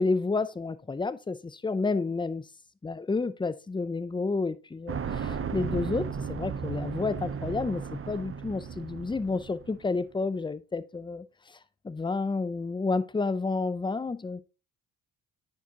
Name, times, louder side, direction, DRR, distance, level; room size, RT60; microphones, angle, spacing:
voice 1, 0.0-2.4 2.8-11.6 11.8-14.4, left 3 dB, 10° left, 0.4 m, -30 dB
sound 1, 4.9-9.8, right 6 dB, 30° right, 0.6 m, -35 dB
9.4 x 4.7 x 2.8 m
cardioid pair, 70°, 47 cm